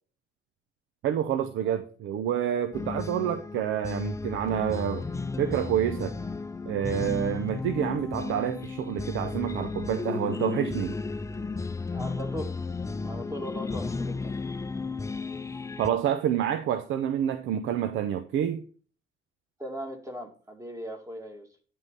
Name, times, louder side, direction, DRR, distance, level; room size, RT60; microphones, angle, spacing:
voice 1, 1.0-5.0 5.4-6.1 6.7-11.0 15.8-18.6, right 10 dB, 85° right, 0.7 m, -28 dB
sound 1, 2.7-15.9, left 4 dB, 15° left, 0.5 m, -34 dB
voice 2, 11.9-12.6 13.1-14.3 19.6-21.5, equal, 15° right, 2.1 m, -39 dB
11.0 x 3.9 x 5.3 m
cardioid pair, 90°, 20 cm